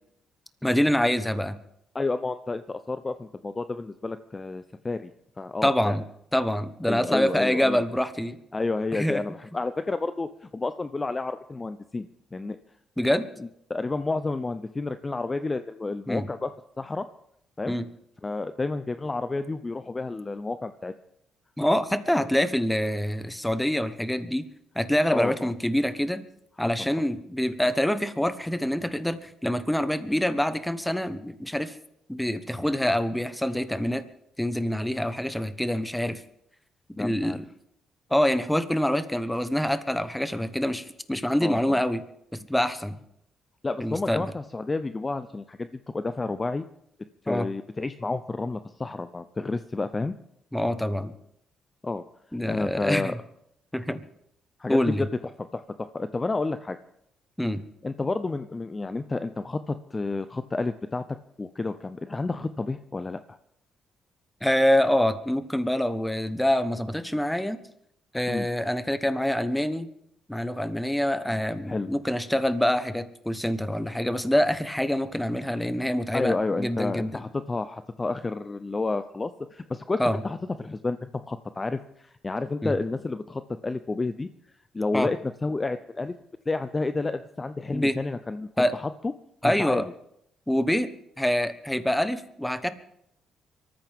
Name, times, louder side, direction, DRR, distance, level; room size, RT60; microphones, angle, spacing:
voice 1, 0.6-1.5 5.6-6.0 6.3-8.4 8.9-9.2 13.0-13.3 16.1-16.2 17.7-17.9 21.6-24.4 24.7-26.2 26.6-31.7 32.1-34.0 34.4-36.2 37.0-37.4 38.1-42.0 42.3-42.9 43.8-44.2 47.3-47.5 50.5-51.1 52.3-53.2 53.7-54.0 54.7-55.0 57.4-57.6 64.4-67.6 68.1-69.9 70.3-77.2 80.0-80.2 82.6-82.7 84.9-85.1 87.7-87.9 88.6-88.7 89.4-89.9 90.5-90.9 91.2-92.7, equal, 5° left, 11 dB, 1.1 m, -25 dB
voice 2, 1.9-5.1 5.4-6.0 6.8-7.8 8.5-12.6 13.4-17.1 17.6-17.7 18.2-20.9 25.1-25.5 26.6-26.7 37.0-37.4 41.4-41.8 43.6-46.7 47.2-50.1 51.8-52.0 52.4-53.1 54.6-55.1 55.4-56.8 57.8-63.4 68.3-68.5 71.7-71.9 76.1-84.3 84.7-86.2 86.5-89.1 89.4-89.9, left 3 dB, 25° left, 11 dB, 0.6 m, -30 dB
24.5 x 14.0 x 3.6 m, 0.76 s
cardioid pair, 90°, 0 cm